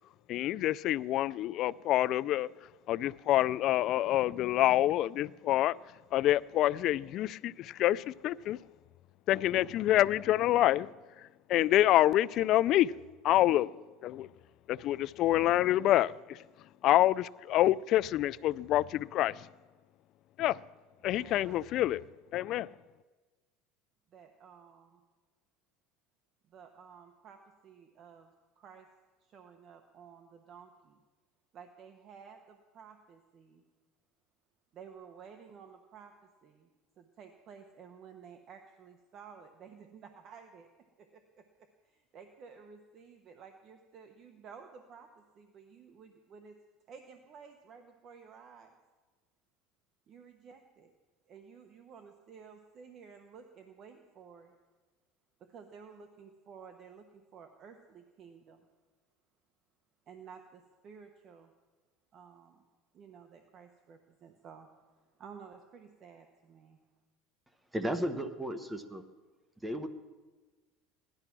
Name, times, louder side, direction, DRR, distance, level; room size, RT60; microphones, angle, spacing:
voice 1, 0.3-2.5 2.9-5.8 6.1-8.6 9.3-10.9 11.2-12.9 13.2-13.7 14.0-14.3 14.7-16.4 16.8-19.5 20.4-20.6 21.0-22.0 22.3-22.7, left 14 dB, 50° left, 0.3 m, -27 dB
voice 2, 21.1-21.6 24.1-25.0 26.5-28.9 29.2-31.0 31.5-33.6 34.7-36.7 37.0-40.7 41.0-46.6 46.9-48.7 50.1-50.9 51.3-54.5 55.5-58.7 60.1-61.5 62.1-62.6 62.9-64.7 65.0-66.8, right 6 dB, 40° right, 1.1 m, -53 dB
voice 3, 67.7-69.0 69.6-69.9, equal, 10° right, 1.0 m, -34 dB
17.5 x 11.5 x 6.0 m
supercardioid pair, 135°, 0 cm